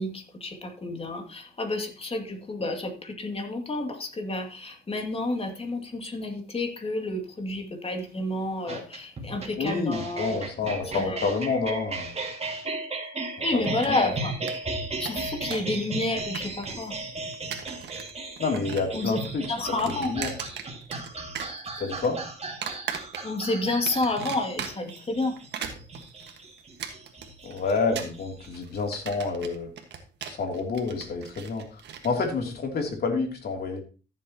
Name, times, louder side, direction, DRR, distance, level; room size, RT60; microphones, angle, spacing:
voice 1, 0.0-10.4 10.9-11.2 13.4-14.3 15.0-16.9 18.9-19.2 19.5-20.1 23.2-25.4, left 2 dB, 35° left, 4 dB, 2.4 m, -30 dB
sound 1, 8.7-28.5, right 3 dB, 35° right, 2.1 m, -36 dB
voice 2, 9.6-12.2 13.5-14.1 18.4-19.5 19.9-20.3 21.8-22.2 27.4-29.7 30.3-33.8, left 4 dB, 65° left, 3 dB, 3.0 m, -29 dB
sound 2, 13.6-14.2 14.5-14.6 14.8-15.8 16.0-16.9 17.3-18.1 18.4-19.0 19.2-21.1 21.3-22.1 22.6-23.5 23.9-25.0 25.4-32.1, right 8 dB, 80° right, 1.6 m, -38 dB
14.5 x 7.6 x 3.0 m, 0.34 s
cardioid pair, 85°, 18 cm